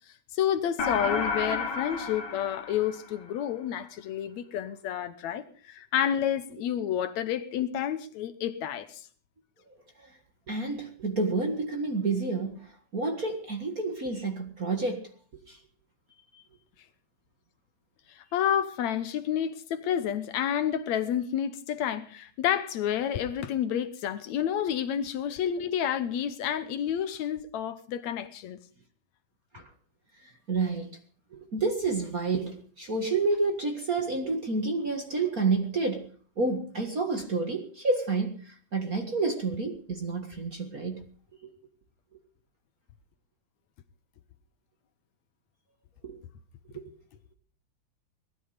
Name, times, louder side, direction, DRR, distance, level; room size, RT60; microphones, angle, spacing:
voice 1, 0.3-9.1 18.2-28.6, left 9 dB, 70° left, 2.2 m, -30 dB
sound 1, 0.8-3.4, left 4 dB, 55° left, 2.4 m, -31 dB
voice 2, 10.5-15.1 15.5-15.6 29.5-29.6 30.2-30.9 31.3-36.1 36.4-41.0 41.4-41.5 46.0-46.2 46.7-46.9, right 3 dB, 35° right, 1.8 m, -29 dB
19.0 x 13.0 x 5.1 m
omnidirectional pair, 3.4 m